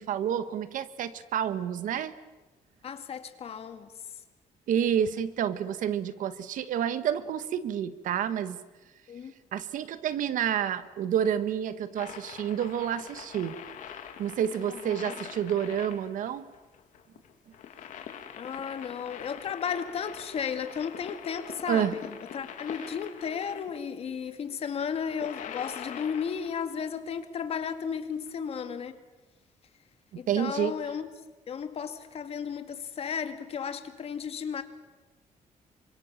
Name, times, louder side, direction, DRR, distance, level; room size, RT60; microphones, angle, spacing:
voice 1, 0.0-2.1 4.7-8.6 9.5-13.6 14.2-16.5 21.7-21.9 30.1-30.7, right 9 dB, 75° right, 1.5 m, -29 dB
voice 2, 2.8-3.9 9.1-9.3 14.7-15.1 18.3-22.1 22.3-29.0 30.2-31.0 31.5-34.6, left 7 dB, 45° left, 2.1 m, -34 dB
sound 1, 12.0-23.8 24.9-26.7 28.3-28.4, left 8 dB, 70° left, 2.8 m, -44 dB
27.5 x 25.0 x 7.4 m
cardioid pair, 160°, 14 cm